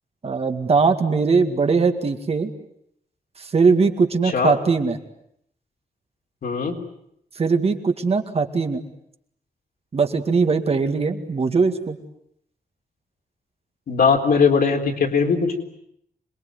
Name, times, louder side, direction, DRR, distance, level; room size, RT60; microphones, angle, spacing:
voice 1, 0.2-2.5 3.4-5.0 7.4-8.8 9.9-12.0, right 4 dB, 40° right, 6 dB, 2.2 m, -20 dB
voice 2, 6.4-6.8 13.9-15.6, left 5 dB, 80° left, 2 dB, 4.0 m, -19 dB
27.0 x 21.5 x 9.5 m, 0.73 s
wide cardioid pair, 170°, 15 cm